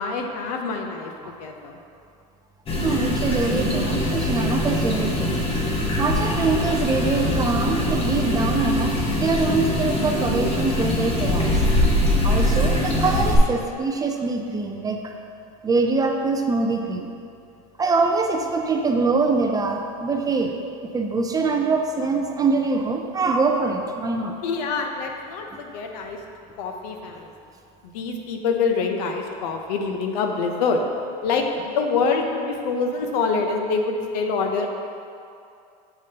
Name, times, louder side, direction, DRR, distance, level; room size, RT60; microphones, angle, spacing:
voice 1, 0.0-1.8 24.4-26.2 26.6-27.3 27.8-30.8 31.2-34.7, left 4 dB, 75° left, 3 dB, 0.7 m, -25 dB
sound 1, 2.7-13.4, left 1 dB, 30° left, 1.0 m, -23 dB
voice 2, 2.8-5.4 6.0-8.9 9.2-11.6 12.2-15.0 15.6-17.1 17.8-20.5 20.9-24.3, right 3 dB, 20° right, 3 dB, 0.4 m, -23 dB
6.7 x 5.0 x 2.8 m, 2.5 s
supercardioid pair, 120°, 21 cm